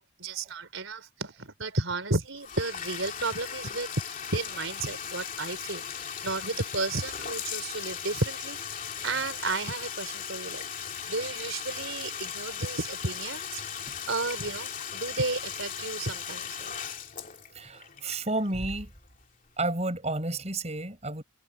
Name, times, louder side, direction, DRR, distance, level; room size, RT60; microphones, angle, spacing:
voice 1, 0.0-13.6 14.1-16.7, right 3 dB, 75° right, 3.9 m, -33 dB
Bathtub (filling or washing), 2.4-19.1, left 8 dB, 40° left, 2.9 m, -38 dB
voice 2, 17.5-18.9 19.6-21.2, right 2 dB, 30° right, 5.5 m, -31 dB
head